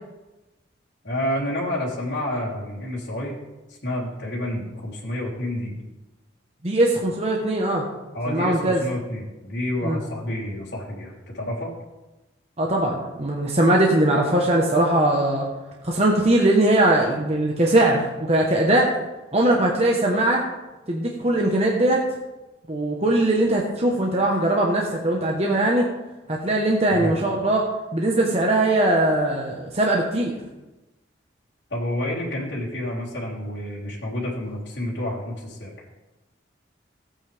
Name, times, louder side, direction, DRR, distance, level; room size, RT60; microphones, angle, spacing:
voice 1, 1.0-3.4 3.8-5.7 8.1-11.7 26.9-27.2 31.7-35.7, left 1 dB, 60° left, -6 dB, 3.6 m, -29 dB
voice 2, 6.6-7.8 8.3-8.8 9.8-10.0 12.6-15.5 15.8-18.9 19.3-20.4 20.9-22.0 22.7-25.9 26.3-27.6 27.9-30.4, right 1 dB, 35° right, -1 dB, 1.2 m, -20 dB
15.0 x 8.8 x 3.5 m, 1.0 s
head